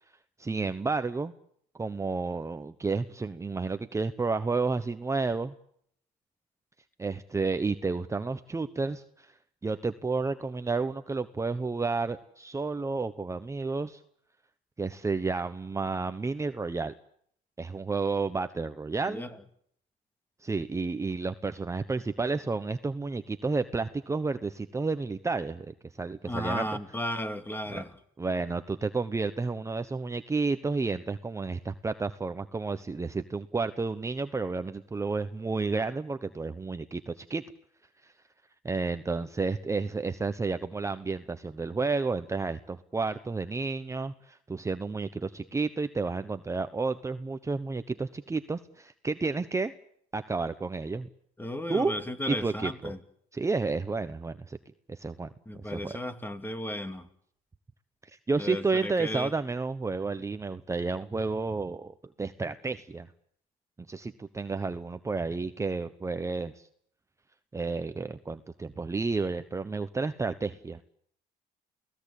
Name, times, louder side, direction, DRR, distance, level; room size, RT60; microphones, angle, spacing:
voice 1, 0.4-1.3 1.8-5.5 7.0-9.3 9.6-14.0 14.8-16.9 17.6-19.2 20.4-26.6 27.7-27.8 28.2-37.4 38.0-38.1 38.6-49.7 50.1-51.1 51.7-52.0 52.3-52.9 53.3-54.6 54.9-56.0 58.0-63.1 63.9-66.7 67.5-70.8, right 4 dB, 15° right, 1.1 m, -31 dB
voice 2, 26.3-27.9 51.4-53.0 55.5-57.1 58.4-59.3, left 1 dB, 10° left, 2.5 m, -34 dB
29.5 x 18.0 x 8.5 m
cardioid pair, 110°, 17 cm